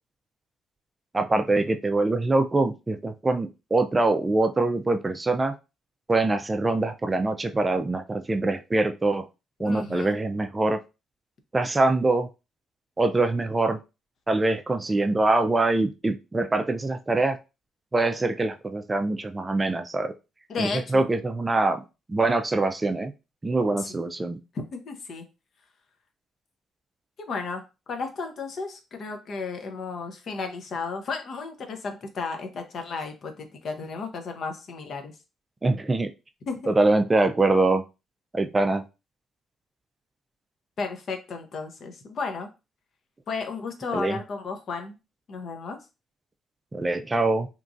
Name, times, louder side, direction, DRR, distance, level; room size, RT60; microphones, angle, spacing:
voice 1, 1.1-5.5 6.1-9.2 9.6-10.8 11.5-12.3 13.0-13.8 14.3-17.4 17.9-20.1 20.6-21.8 22.1-23.1 23.4-24.4 35.6-36.1 36.7-37.8 38.3-38.8 43.9-44.2 46.7-47.5, right 2 dB, 20° right, 7 dB, 0.3 m, -24 dB
voice 2, 9.6-10.2 20.5-21.0 23.7-24.0 24.5-25.2 27.2-27.6 27.9-35.1 36.5-36.8 40.8-42.5 43.3-45.0 45.3-45.8, left 4 dB, 60° left, 6 dB, 0.6 m, -33 dB
2.9 x 2.4 x 2.5 m, 0.28 s
cardioid pair, 90°, 0 cm